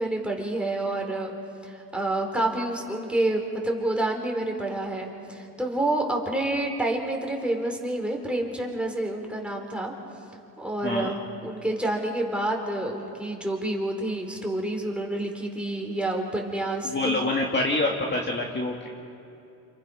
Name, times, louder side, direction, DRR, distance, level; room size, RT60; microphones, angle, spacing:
voice 1, 0.0-1.3 1.6-9.9 10.6-17.3, right 1 dB, 5° right, 0 dB, 4.2 m, -28 dB
voice 2, 10.8-11.1 16.8-18.9, left 2 dB, 25° left, -1 dB, 2.3 m, -26 dB
29.5 x 28.5 x 5.7 m, 2.7 s
cardioid pair, 105°, 40 cm